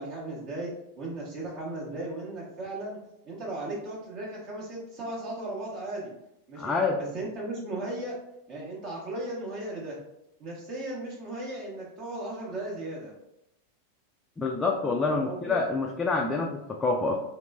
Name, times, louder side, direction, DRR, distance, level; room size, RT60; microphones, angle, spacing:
voice 1, 0.0-3.0 3.2-6.1 6.5-8.1 8.5-10.0 10.4-13.1 15.1-15.6, right 2 dB, 40° right, -3 dB, 1.0 m, -36 dB
voice 2, 6.6-7.0 14.4-17.2, left 3 dB, 15° left, 0 dB, 0.3 m, -27 dB
3.1 x 2.9 x 2.3 m, 0.82 s
figure-of-eight pair, 90°, 0 cm